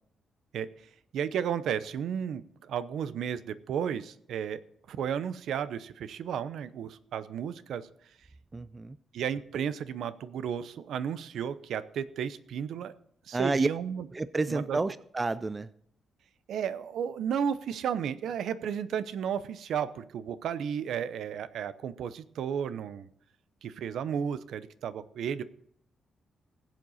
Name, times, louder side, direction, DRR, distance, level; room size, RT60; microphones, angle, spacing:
voice 1, 1.1-4.6 4.9-7.9 9.1-12.9 13.3-14.1 14.5-14.8 16.5-23.1 23.6-25.4, right 8 dB, 75° right, 14 dB, 0.7 m, -33 dB
voice 2, 8.5-9.0 13.3-13.7 14.1-15.7, right 3 dB, 20° right, 16 dB, 0.4 m, -30 dB
20.5 x 7.6 x 4.1 m, 0.68 s
cardioid pair, 150°, 0 cm